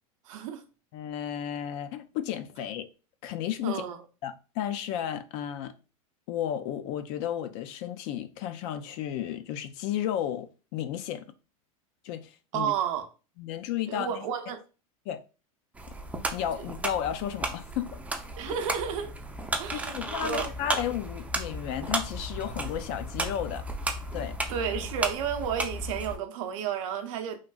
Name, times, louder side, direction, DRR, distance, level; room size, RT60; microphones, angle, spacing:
voice 1, 0.2-0.6 3.6-4.0 12.5-13.1 13.9-14.6 18.4-19.2 19.6-19.9 20.2-20.5 24.5-27.4, right 8 dB, 65° right, 0.6 m, -31 dB
voice 2, 0.9-2.9 3.2-3.8 4.2-5.7 6.3-11.2 12.0-12.7 13.4-14.2 15.1-15.2 16.3-18.0 18.5-18.6 19.7-23.7 24.1-24.4, left 10 dB, 55° left, 0.4 m, -33 dB
sound 1, 15.7-26.2, right 1 dB, 10° right, 0.4 m, -34 dB
3.1 x 2.5 x 2.3 m
hypercardioid pair, 110°, 18 cm